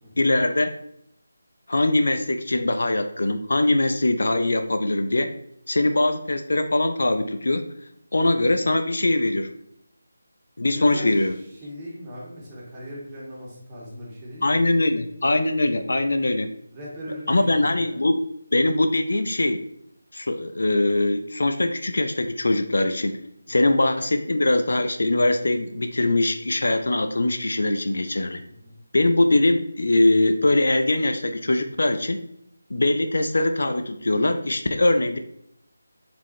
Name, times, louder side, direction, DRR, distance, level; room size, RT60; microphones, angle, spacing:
voice 1, 0.2-0.7 1.7-5.3 5.7-7.6 8.1-9.5 10.6-11.3 14.4-16.5 17.3-18.2 18.5-19.6 20.1-23.2 23.5-28.4 28.9-32.2 32.7-35.2, left 2 dB, 65° left, 8 dB, 0.6 m, -22 dB
voice 2, 10.6-14.9 16.1-18.0 23.5-23.7 28.4-28.8, equal, 20° right, -6 dB, 2.1 m, -40 dB
7.1 x 4.4 x 3.2 m, 0.74 s
figure-of-eight pair, 160°, 0 cm